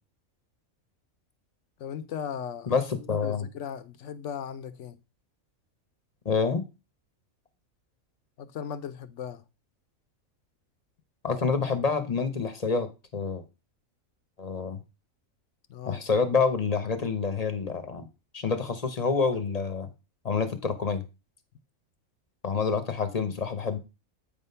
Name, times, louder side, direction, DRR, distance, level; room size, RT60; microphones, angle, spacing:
voice 1, 1.8-2.8 3.1-5.0 8.4-9.4 15.7-16.1, left 8 dB, 65° left, 0.9 m, -37 dB
voice 2, 2.7-3.5 6.2-6.6 11.2-13.4 14.4-14.8 15.9-18.1 18.3-19.9 20.2-21.0 22.4-23.8, left 5 dB, 35° left, 0.8 m, -27 dB
8.6 x 3.6 x 5.5 m
omnidirectional pair, 1.5 m